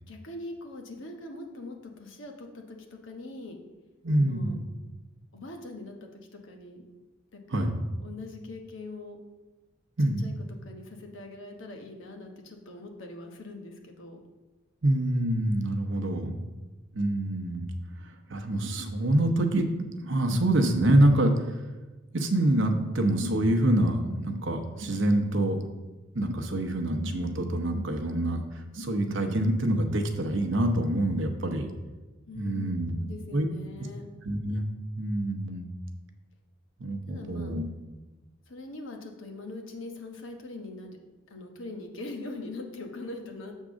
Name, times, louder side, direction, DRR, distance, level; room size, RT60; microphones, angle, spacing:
voice 1, 0.1-3.6 4.1-4.5 5.3-6.8 7.3-7.6 8.0-9.2 10.2-10.3 10.6-14.2 32.3-34.1 37.0-37.6 38.5-41.0 41.3-43.5, left 2 dB, 70° left, 3 dB, 1.1 m, -42 dB
voice 2, 4.0-4.6 7.5-7.8 10.0-10.3 14.8-16.4 16.9-17.7 18.3-19.7 20.0-21.6 22.1-25.6 26.1-31.7 32.3-32.9 33.3-33.5 34.2-34.7 35.0-35.7 36.8-37.6, right 1 dB, 65° right, 5 dB, 0.8 m, -26 dB
7.3 x 3.7 x 6.2 m, 1.2 s
head